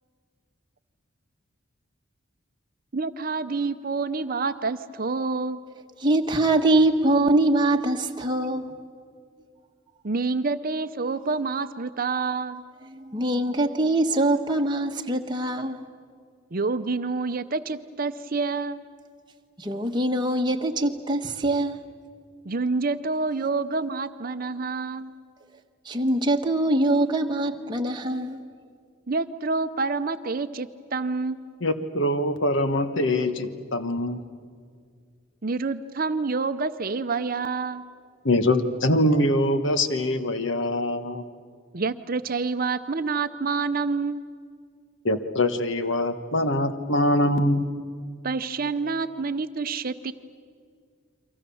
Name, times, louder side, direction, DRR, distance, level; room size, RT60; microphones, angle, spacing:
voice 1, 2.9-5.6 10.0-12.6 16.5-18.8 22.4-25.1 29.1-31.5 35.4-37.8 41.7-44.2 48.2-50.1, right 4 dB, 45° right, 11 dB, 0.7 m, -28 dB
voice 2, 6.0-8.7 12.9-15.9 19.6-21.8 25.8-28.4, right 2 dB, 20° right, 3 dB, 1.3 m, -23 dB
voice 3, 31.6-34.2 38.2-41.2 45.0-47.7, left 1 dB, 65° left, 9 dB, 1.4 m, -23 dB
29.5 x 24.0 x 7.1 m, 2.1 s
head